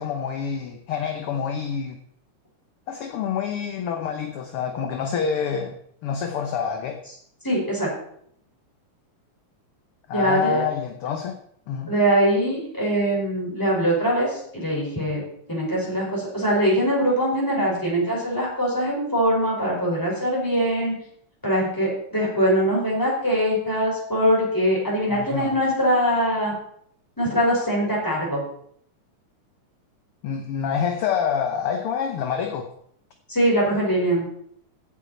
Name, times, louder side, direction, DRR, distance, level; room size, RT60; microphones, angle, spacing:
voice 1, 0.0-2.0 2.9-5.7 6.0-7.0 10.1-11.4 11.7-11.9 25.1-25.6 30.2-32.7, left 7 dB, 65° left, 5 dB, 1.5 m, -27 dB
voice 2, 7.4-7.9 10.1-10.6 11.9-15.2 15.5-20.9 21.4-26.5 27.2-28.4 33.3-34.2, equal, 5° left, -4 dB, 5.1 m, -22 dB
15.5 x 8.6 x 4.3 m, 0.67 s
omnidirectional pair, 3.4 m